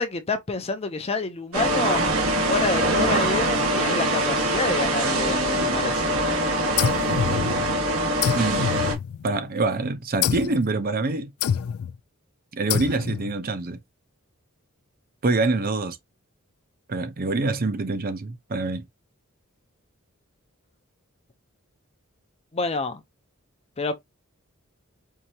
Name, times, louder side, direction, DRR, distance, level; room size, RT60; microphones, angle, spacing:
voice 1, 0.0-2.0 2.5-6.2 22.5-23.0 23.8-23.9, left 3 dB, 30° left, 0.6 m, -28 dB
sound 1, 1.5-8.9, right 1 dB, 80° right, 1.6 m, -23 dB
sound 2, 6.8-7.8 8.2-9.5 10.2-10.6 11.4-12.0 12.7-13.3, left 8 dB, 75° left, 0.3 m, -27 dB
voice 2, 8.3-8.7 9.2-11.3 12.5-13.8 15.2-16.0 16.9-18.8, right 3 dB, 45° right, 0.7 m, -25 dB
4.6 x 2.8 x 2.7 m
head